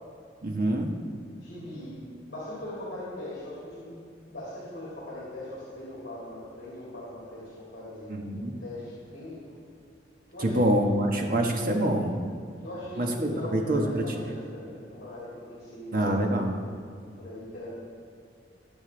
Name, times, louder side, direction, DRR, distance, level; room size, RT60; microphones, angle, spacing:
voice 1, 0.4-0.9 8.1-8.6 10.4-12.2 13.0-14.3 15.9-16.6, right 1 dB, 50° right, 1 dB, 1.3 m, -26 dB
voice 2, 1.4-2.0 2.3-4.0 4.3-9.3 10.3-10.7 12.6-16.4 17.2-17.7, left 1 dB, 60° left, -8 dB, 3.0 m, -40 dB
20.0 x 7.1 x 3.4 m, 2.4 s
head